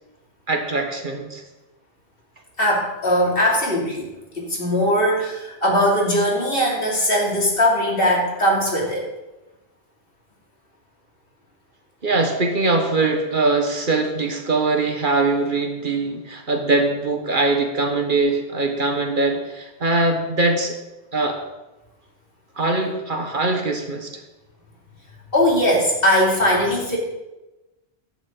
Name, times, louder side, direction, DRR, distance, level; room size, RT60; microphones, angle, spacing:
voice 1, 0.5-1.4 12.0-20.8 21.1-21.4 22.6-24.1, right 3 dB, 50° right, 4 dB, 1.6 m, -22 dB
voice 2, 2.6-4.1 4.3-9.0 25.3-27.0, equal, 60° left, -2 dB, 3.2 m, -20 dB
15.0 x 11.0 x 3.9 m, 1.0 s
omnidirectional pair, 1.1 m